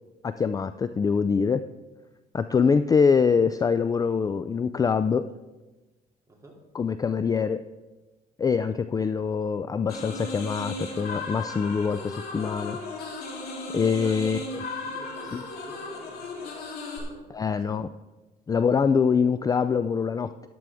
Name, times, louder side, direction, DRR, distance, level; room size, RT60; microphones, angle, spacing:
voice 1, 0.2-1.6 2.3-5.3 6.7-7.6 8.4-12.8 13.7-14.4 15.3-15.4 17.3-17.9 18.5-20.3, left 5 dB, 20° left, 11 dB, 0.3 m, -24 dB
sound 1, 9.9-17.0, left 2 dB, 65° left, 3.4 m, -36 dB
voice 2, 14.0-14.4 14.8-16.6 16.9-17.2 17.7-18.2, right 2 dB, 20° right, -1 dB, 2.6 m, -49 dB
13.5 x 11.0 x 3.5 m, 1.1 s
cardioid pair, 110°, 17 cm